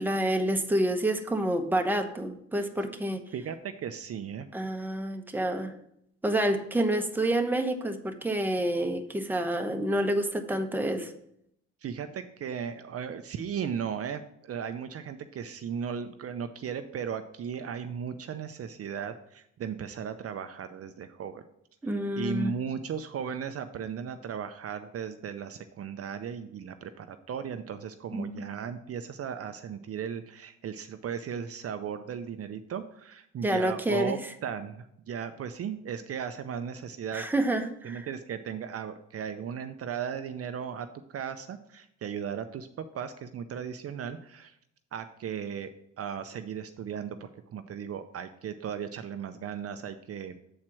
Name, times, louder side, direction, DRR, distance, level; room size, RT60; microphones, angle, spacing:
voice 1, 0.0-3.2 4.5-5.7 6.2-11.1 21.8-22.5 28.1-28.3 33.4-34.1 37.1-38.1, right 1 dB, 5° right, 5 dB, 0.9 m, -28 dB
voice 2, 3.3-4.5 11.8-21.4 21.9-37.2 37.8-44.6 44.9-45.7 46.0-50.3, right 7 dB, 50° right, 9 dB, 0.6 m, -36 dB
7.5 x 4.4 x 6.0 m, 0.74 s
cardioid pair, 90°, 30 cm